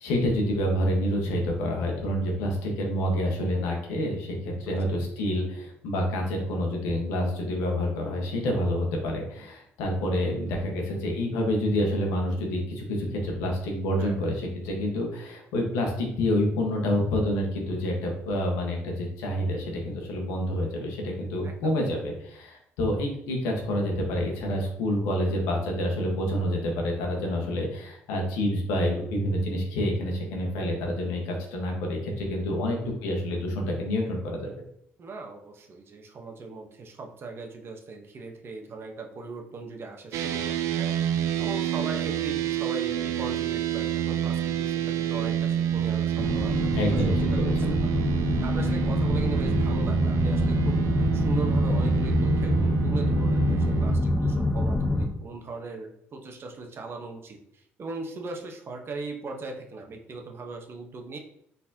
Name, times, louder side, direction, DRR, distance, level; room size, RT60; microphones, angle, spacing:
voice 1, 0.0-34.5 46.7-47.7, left 1 dB, 85° left, 0 dB, 1.2 m, -28 dB
voice 2, 4.6-5.0 14.0-14.3 21.4-21.8 32.4-33.0 35.0-41.0 41.4-47.6 47.8-47.9 48.4-50.8 51.1-61.2, right 3 dB, 50° right, 3 dB, 1.0 m, -39 dB
sound 1, 40.1-54.0, right 10 dB, 75° right, 0.4 m, -28 dB
sound 2, 46.2-55.1, left 2 dB, 15° left, 0.9 m, -26 dB
4.3 x 4.0 x 2.8 m, 0.72 s
supercardioid pair, 65°, 5 cm